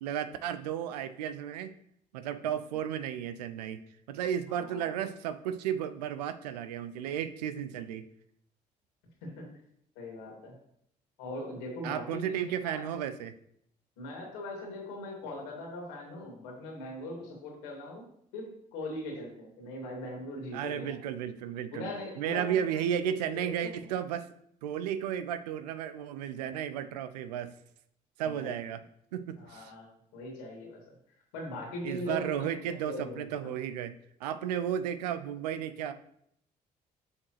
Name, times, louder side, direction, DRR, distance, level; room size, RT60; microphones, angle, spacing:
voice 1, 0.0-1.7 2.1-3.8 4.1-8.1 11.8-13.3 20.5-21.9 22.2-24.3 24.6-27.5 28.2-28.8 29.1-29.7 31.8-33.9 34.2-35.9, right 9 dB, 80° right, 11 dB, 0.5 m, -33 dB
voice 2, 4.5-4.9 9.2-9.5 10.0-10.6 11.2-12.8 14.0-18.0 18.3-21.0 21.7-23.7 28.2-28.6 29.4-30.9 31.3-32.4 32.8-33.5, left 1 dB, 75° left, 0 dB, 2.5 m, -40 dB
7.2 x 6.4 x 3.2 m, 0.72 s
figure-of-eight pair, 45°, 21 cm